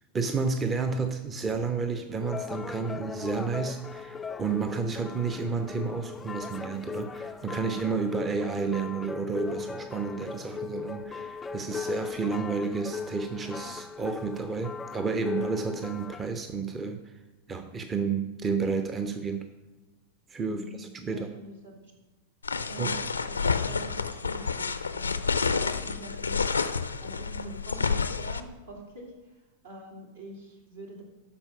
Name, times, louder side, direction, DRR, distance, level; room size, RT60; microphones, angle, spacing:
voice 1, 0.1-17.1 17.5-19.5 20.3-21.3 22.8-22.9, right 5 dB, 20° right, 7 dB, 0.6 m, -31 dB
sound 1, 2.2-16.3, left 5 dB, 15° left, 0.3 m, -38 dB
voice 2, 20.4-21.9 22.7-26.5 27.0-31.0, right 2 dB, 70° right, -1 dB, 2.5 m, -45 dB
sound 2, 22.4-28.4, left 5 dB, 75° left, 0.5 m, -29 dB
12.5 x 4.5 x 5.7 m, 1.1 s
figure-of-eight pair, 90°, 0 cm